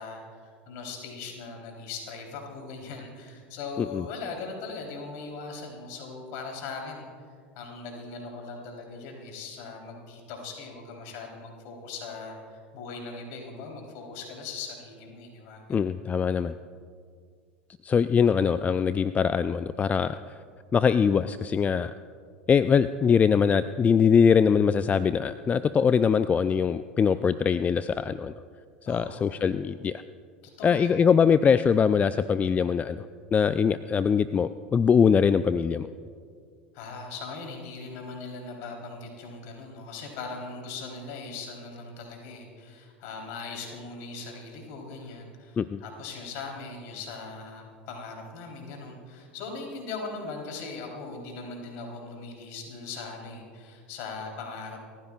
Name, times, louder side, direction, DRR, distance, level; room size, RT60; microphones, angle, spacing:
voice 1, 0.0-7.1 7.6-15.9 28.9-29.4 30.6-30.9 36.7-54.8, left 4 dB, 55° left, 1 dB, 3.7 m, -40 dB
voice 2, 15.7-16.6 17.8-20.4 20.7-21.9 22.5-28.3 28.8-30.0 30.6-33.0 33.3-35.9 45.6-45.8, left 6 dB, 25° left, 14 dB, 0.4 m, -22 dB
29.5 x 15.0 x 2.4 m, 2.1 s
figure-of-eight pair, 75°, 6 cm